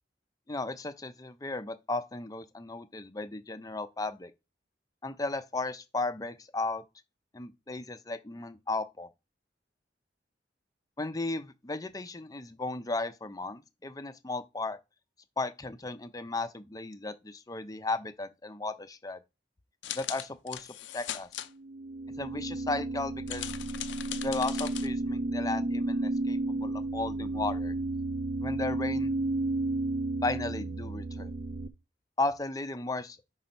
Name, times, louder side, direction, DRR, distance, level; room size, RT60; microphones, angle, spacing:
voice 1, 0.5-4.3 5.0-6.8 7.3-9.1 11.0-14.8 15.4-19.2 19.9-21.3 22.2-23.5 24.2-27.7 28.4-29.1 30.2-31.3 32.2-33.2, left 2 dB, 20° left, 0.5 m, -35 dB
sound 1, 19.8-21.5 23.3-24.9, left 12 dB, 80° left, 0.5 m, -39 dB
sound 2, 21.6-31.7, right 2 dB, 45° right, 0.5 m, -32 dB
5.8 x 3.9 x 5.3 m
head